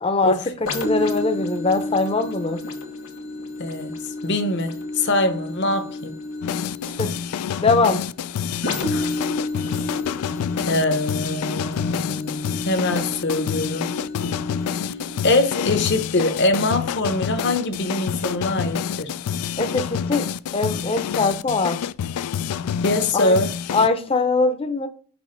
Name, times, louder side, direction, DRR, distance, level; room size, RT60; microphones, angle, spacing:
voice 1, 0.0-2.6 6.8-7.1 7.6-8.0 19.6-20.3 20.5-21.8 23.1-23.4 23.7-24.9, left 3 dB, 25° left, 0.6 m, -22 dB
sound 1, 0.7-18.2 18.7-18.9, left 2 dB, 65° left, 1.6 m, -32 dB
voice 2, 3.6-6.1 8.9-9.1 10.6-14.0 14.8-14.9 15.2-19.1 22.8-23.5, left 2 dB, 50° left, 0.9 m, -23 dB
sound 2, 6.4-23.9, left 8 dB, 85° left, 0.3 m, -28 dB
6.2 x 3.0 x 5.1 m
head